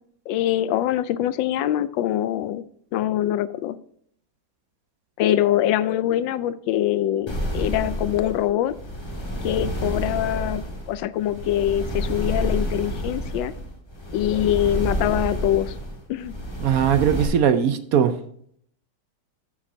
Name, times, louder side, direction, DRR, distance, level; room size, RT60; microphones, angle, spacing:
voice 1, 0.3-2.6 2.9-3.8 5.2-8.8 9.4-13.5 14.1-15.7 16.1-16.3, left 12 dB, 90° left, 15 dB, 1.3 m, -23 dB
sound 1, 7.3-17.3, equal, 15° left, 1.6 m, -29 dB
voice 2, 16.6-18.2, right 8 dB, 65° right, 9 dB, 0.9 m, -19 dB
13.5 x 7.2 x 2.7 m, 0.66 s
omnidirectional pair, 2.0 m